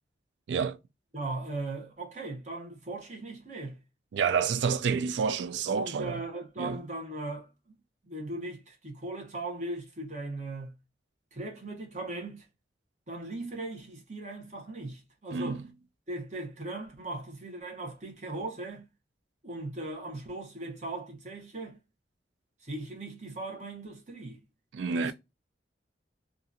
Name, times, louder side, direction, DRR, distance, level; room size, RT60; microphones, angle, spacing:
voice 1, 0.5-0.8 4.1-6.2 6.6-6.8 15.3-15.6 24.7-25.1, right 6 dB, 75° right, 0.3 m, -29 dB
voice 2, 1.1-3.8 5.7-7.8 8.0-10.8 11.3-12.5 13.1-15.6 16.1-18.9 19.4-21.8 22.6-24.4 24.9-25.1, right 2 dB, 40° right, 0.9 m, -38 dB
2.7 x 2.4 x 2.4 m
head